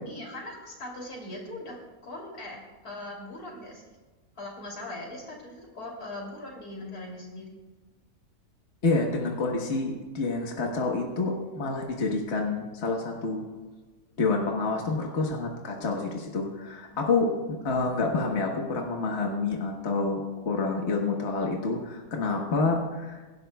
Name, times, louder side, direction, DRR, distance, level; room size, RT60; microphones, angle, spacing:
voice 1, 0.1-1.8 2.0-3.8 4.4-7.6 16.9-17.0, left 1 dB, 80° left, -1 dB, 3.5 m, -40 dB
voice 2, 8.8-13.4 14.2-23.2, left 3 dB, 50° left, 0 dB, 1.5 m, -28 dB
23.0 x 11.0 x 2.3 m, 1.2 s
omnidirectional pair, 1.6 m